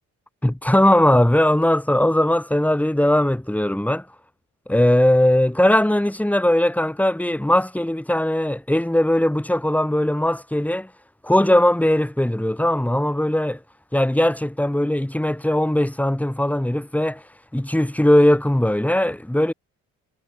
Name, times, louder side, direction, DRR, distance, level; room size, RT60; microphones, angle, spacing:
voice 1, 0.4-4.0 4.7-10.9 11.2-13.6 13.9-17.2 17.5-19.5, left 1 dB, 5° left, 6.6 m, -19 dB
cardioid pair, 90°, 30 cm